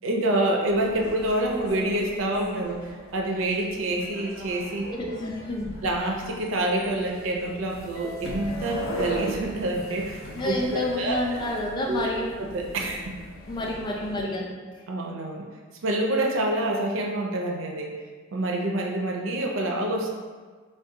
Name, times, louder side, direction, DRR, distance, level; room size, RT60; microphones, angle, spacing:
voice 1, 0.0-4.9 5.8-11.4 11.9-12.1 12.5-13.1 14.9-15.5 15.8-17.9 18.3-20.1, right 1 dB, 75° right, 0 dB, 0.4 m, -27 dB
sound 1, 0.7-14.2, equal, 85° left, 0.5 m, -39 dB
voice 2, 4.8-5.7 10.3-12.4 13.5-14.8, left 1 dB, 20° left, -2 dB, 0.3 m, -29 dB
2.5 x 2.1 x 3.7 m, 1.5 s
head